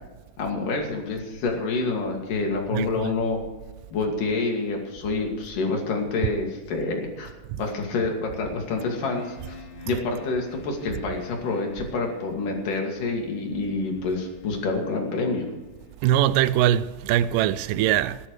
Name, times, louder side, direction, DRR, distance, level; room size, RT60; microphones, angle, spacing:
voice 1, 0.4-3.4 3.9-7.3 7.6-9.6 9.9-15.5, left 3 dB, 75° left, 4.1 m, -27 dB
voice 2, 2.7-3.1 9.9-10.0 16.0-18.2, right 12 dB, 85° right, 2.2 m, -22 dB
sound 1, 8.7-16.5, left 5 dB, 55° left, 4.2 m, -48 dB
16.5 x 11.5 x 4.9 m
omnidirectional pair, 3.8 m